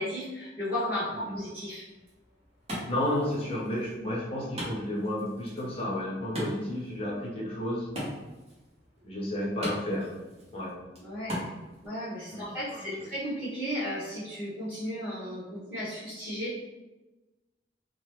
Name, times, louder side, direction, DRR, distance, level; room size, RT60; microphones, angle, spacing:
voice 1, 0.0-1.8 11.0-11.5 11.8-16.6, equal, 10° right, -15 dB, 1.3 m, -34 dB
Wood, 1.9-11.9, equal, 35° right, 1.0 m, -41 dB
voice 2, 2.9-7.9 9.0-10.1 10.5-10.7 12.3-12.8, left 1 dB, 35° left, -4 dB, 0.8 m, -32 dB
3.0 x 2.1 x 3.1 m, 1.1 s
head